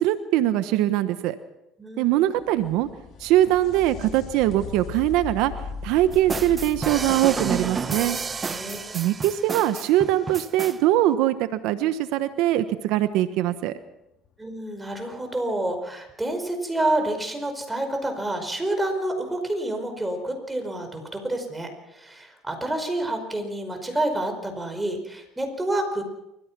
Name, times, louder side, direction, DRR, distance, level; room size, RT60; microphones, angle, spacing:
voice 1, 0.0-1.4 2.0-2.9 3.2-5.5 5.8-8.2 8.9-13.8, right 13 dB, 75° right, 12 dB, 1.1 m, -22 dB
voice 2, 1.8-2.4 8.4-9.0 14.4-26.0, right 1 dB, 10° right, 5 dB, 5.1 m, -28 dB
sound 1, 2.1-9.7 13.1-13.2 14.3-14.4, left 6 dB, 55° left, 2.9 m, -39 dB
sound 2, 6.1-10.8, right 5 dB, 30° right, 0.9 m, -31 dB
28.5 x 15.0 x 6.1 m, 0.89 s
supercardioid pair, 90°, 0 cm